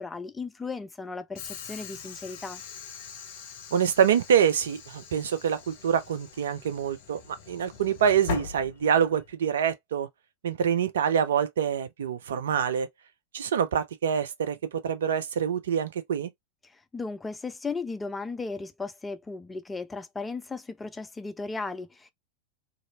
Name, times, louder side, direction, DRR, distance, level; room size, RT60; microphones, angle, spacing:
voice 1, 0.0-2.6 16.9-22.1, left 4 dB, 10° left, 0.4 m, -36 dB
Train / Sliding door, 1.4-9.3, left 6 dB, 50° left, 0.7 m, -41 dB
voice 2, 3.7-10.1 10.4-12.9 13.3-16.3, right 8 dB, 60° right, 0.5 m, -26 dB
2.6 x 2.6 x 2.8 m
figure-of-eight pair, 90°, 0 cm